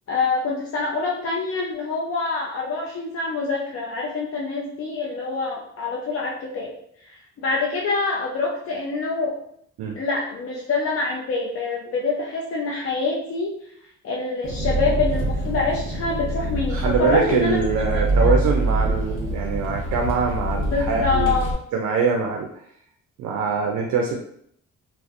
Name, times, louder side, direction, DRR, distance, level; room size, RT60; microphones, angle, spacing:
voice 1, 0.1-6.7 7.0-9.4 10.0-13.5 14.0-17.6 18.2-18.3 20.7-21.5, left 3 dB, 50° left, -3 dB, 0.5 m, -25 dB
Engine, 14.4-21.5, right 1 dB, 45° right, 0.9 m, -25 dB
voice 2, 16.7-21.3 21.7-22.5 23.2-24.2, right 5 dB, 70° right, 2 dB, 0.4 m, -23 dB
2.5 x 2.1 x 2.4 m, 0.69 s
cardioid pair, 90°, 30 cm